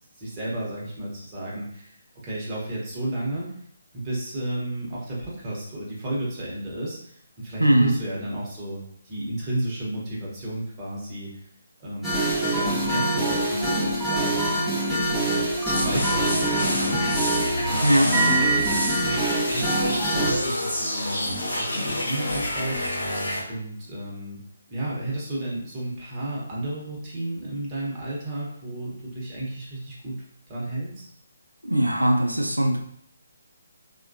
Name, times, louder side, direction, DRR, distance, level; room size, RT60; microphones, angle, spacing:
voice 1, 0.2-1.9 2.2-3.5 3.9-11.3 11.8-17.4 17.7-18.4 19.5-23.1 23.5-24.4 24.7-30.2 30.5-31.1, right 1 dB, 25° right, -6 dB, 1.0 m, -32 dB
voice 2, 7.6-8.0 17.8-18.5 31.7-32.8, right 1 dB, 90° right, 1 dB, 0.5 m, -20 dB
sound 1, 12.0-20.3, right 1 dB, ahead, 0.7 m, -25 dB
sound 2, 15.7-23.4, left 1 dB, 65° left, 0.8 m, -28 dB
3.1 x 2.3 x 2.6 m, 0.67 s
figure-of-eight pair, 140°, 0 cm